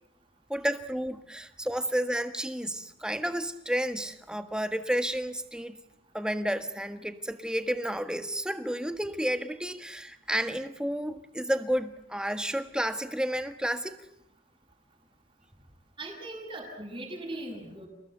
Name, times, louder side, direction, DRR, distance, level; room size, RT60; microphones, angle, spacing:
voice 1, 0.5-5.8 6.1-14.0, equal, 5° right, 9 dB, 1.6 m, -31 dB
voice 2, 16.0-17.9, right 1 dB, 25° right, -1 dB, 7.9 m, -39 dB
29.0 x 19.5 x 9.3 m, 0.77 s
head